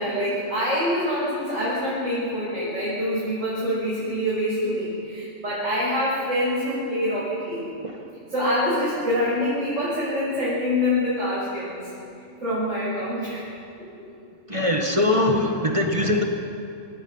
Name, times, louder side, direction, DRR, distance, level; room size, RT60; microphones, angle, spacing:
voice 1, 0.0-7.7 8.3-11.9 12.4-13.4, left 1 dB, 85° right, -8 dB, 6.3 m, -25 dB
voice 2, 14.5-16.2, left 1 dB, 25° right, 2 dB, 1.7 m, -22 dB
26.5 x 18.0 x 5.7 m, 2.6 s
omnidirectional pair, 1.3 m